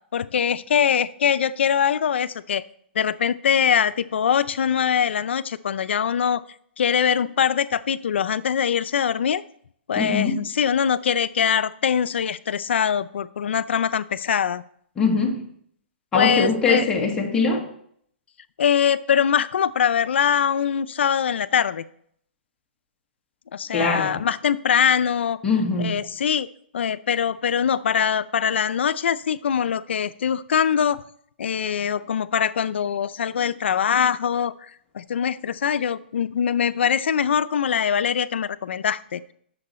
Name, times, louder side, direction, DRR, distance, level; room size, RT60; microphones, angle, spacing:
voice 1, 0.1-2.6 3.0-6.4 6.8-9.4 9.9-14.6 16.1-16.9 18.6-21.8 23.5-25.4 25.8-26.5 26.7-31.0 31.4-34.5 34.9-39.3, left 8 dB, 75° left, 0.5 m, -22 dB
voice 2, 9.9-10.4 15.0-15.4 16.1-17.6 23.7-24.2 25.4-26.0, left 4 dB, 10° left, 1.6 m, -22 dB
10.5 x 7.0 x 4.3 m
hypercardioid pair, 160°, 6 cm